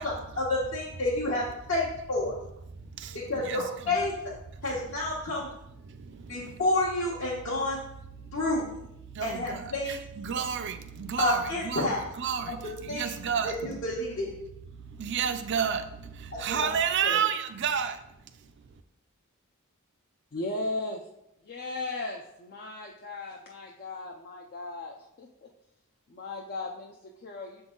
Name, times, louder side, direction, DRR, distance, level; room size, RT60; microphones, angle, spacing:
voice 1, 0.0-2.3 3.1-4.1 4.6-5.5 6.3-7.8 8.3-8.7 9.2-10.0 11.2-12.0 12.5-12.6 12.9-13.1 13.4-14.3 16.3-16.7 17.0-17.2, left 2 dB, 60° left, 1.2 m, -29 dB
voice 2, 2.7-4.0 4.6-4.9 5.8-6.6 7.5-7.8 8.1-8.4 9.1-13.5 14.7-18.8, right 7 dB, 55° right, 0.5 m, -32 dB
voice 3, 20.3-21.0 21.4-25.5 26.1-27.6, left 2 dB, 45° left, 0.5 m, -37 dB
6.9 x 3.9 x 3.8 m
head